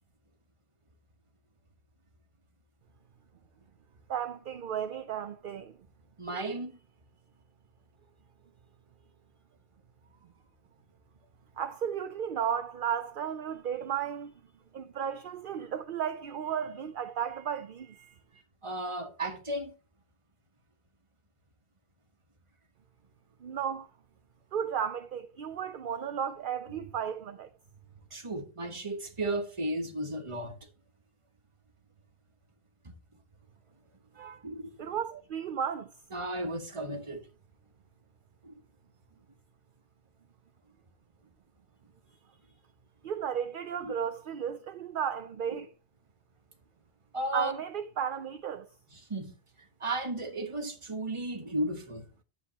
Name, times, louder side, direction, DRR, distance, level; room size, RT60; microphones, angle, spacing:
voice 1, 4.1-5.8 11.6-14.3 14.7-18.2 23.4-23.9 24.5-27.5 34.2-34.4 34.8-35.9 43.0-45.7 47.3-48.7, right 8 dB, 55° right, 0.7 m, -34 dB
voice 2, 6.2-6.8 18.6-19.7 26.7-26.9 28.1-30.6 32.8-33.0 34.4-34.8 36.1-37.3 38.4-38.6 43.8-43.9 45.5-45.6 47.1-47.5 48.9-49.3 49.8-52.0, right 1 dB, 30° right, 1.3 m, -34 dB
10.5 x 7.9 x 2.9 m
omnidirectional pair, 1.1 m